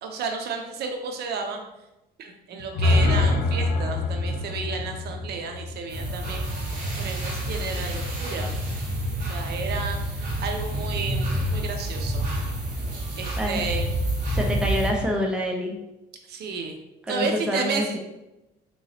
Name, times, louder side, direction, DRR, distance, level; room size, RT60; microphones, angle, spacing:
voice 1, 0.0-1.6 2.2-6.5 7.0-8.5 9.3-12.2 13.2-13.9 16.3-16.7 17.1-18.0, right 4 dB, 65° right, 4 dB, 0.6 m, -32 dB
sound 1, 2.6-6.7, left 2 dB, 65° left, 0.7 m, -25 dB
sound 2, 5.9-14.9, right 1 dB, 50° right, 1.2 m, -28 dB
voice 2, 14.3-15.8 17.1-18.0, equal, 5° right, 0 dB, 0.5 m, -27 dB
3.7 x 3.0 x 2.8 m, 0.95 s
cardioid pair, 130°, 18 cm